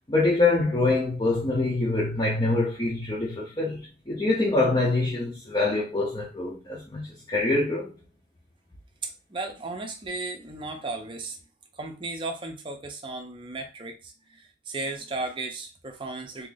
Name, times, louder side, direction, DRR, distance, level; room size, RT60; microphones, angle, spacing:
voice 1, 0.1-3.8 4.1-7.9, left 2 dB, 25° left, 0.6 m, -25 dB
voice 2, 9.0-11.4 11.7-16.5, right 3 dB, 25° right, 0.6 m, -35 dB
2.9 x 2.5 x 3.8 m
head